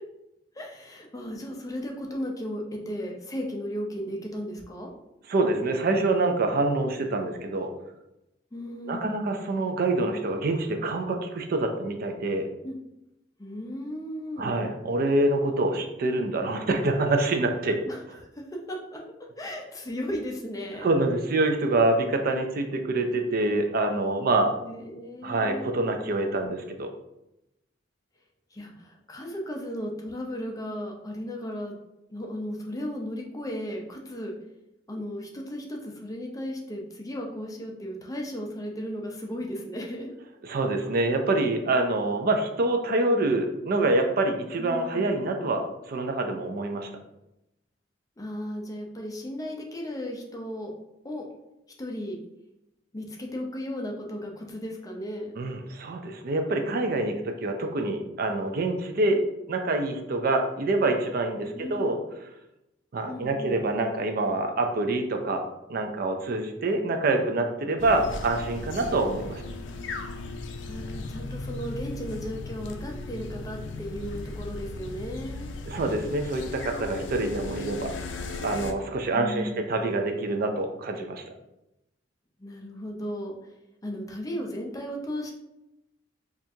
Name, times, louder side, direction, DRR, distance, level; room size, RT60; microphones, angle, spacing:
voice 1, 0.5-4.9 8.5-9.3 12.6-12.7 13.4-14.6 17.9-18.0 18.3-18.4 18.7-19.0 19.4-20.9 24.6-25.9 28.5-31.7 32.1-34.3 34.9-40.1 44.6-45.1 48.2-50.7 51.0-51.3 51.8-52.2 52.9-55.4 61.5-61.9 63.1-63.6 70.7-75.5 79.1-79.8 82.4-83.3 83.8-85.3, equal, 20° left, 0 dB, 0.5 m, -35 dB
voice 2, 5.3-7.7 8.9-12.5 14.4-17.8 20.8-24.5 25.2-26.9 40.4-46.9 55.4-59.2 59.5-62.0 62.9-65.4 65.7-69.4 75.7-77.9 78.4-81.2, right 2 dB, 55° right, 5 dB, 0.4 m, -26 dB
sound 1, 67.8-78.7, left 3 dB, 75° left, 0.4 m, -37 dB
4.3 x 2.4 x 2.6 m, 0.89 s
head